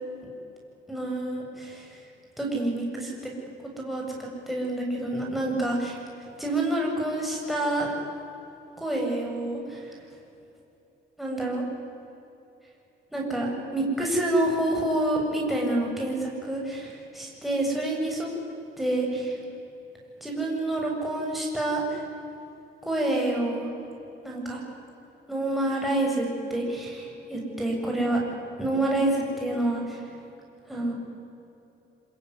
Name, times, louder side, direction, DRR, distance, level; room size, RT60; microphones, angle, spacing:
voice 1, 0.9-2.0 2.4-3.3 3.8-6.0 6.4-8.0 8.8-10.0 11.2-11.6 13.1-18.3 18.8-19.4 20.2-22.0 22.8-23.7 24.2-24.6 25.3-28.2 28.6-30.0 30.7-30.9, right 1 dB, ahead, -2 dB, 7.7 m, -28 dB
26.5 x 22.0 x 9.8 m, 2.9 s
cardioid pair, 90°, 20 cm